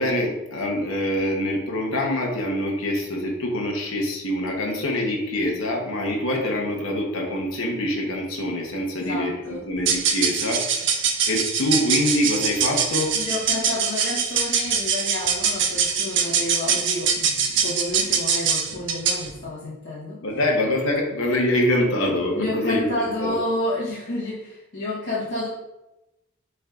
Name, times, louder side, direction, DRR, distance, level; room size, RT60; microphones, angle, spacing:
voice 1, 0.0-10.6 11.3-13.1 20.2-23.4, left 1 dB, 80° left, -1 dB, 0.9 m, -25 dB
voice 2, 9.0-9.6 13.2-20.2 22.3-25.5, left 1 dB, 60° left, -9 dB, 1.1 m, -30 dB
sound 1, 9.8-19.3, right 6 dB, 60° right, 0.5 m, -23 dB
6.3 x 3.4 x 2.4 m, 0.95 s
head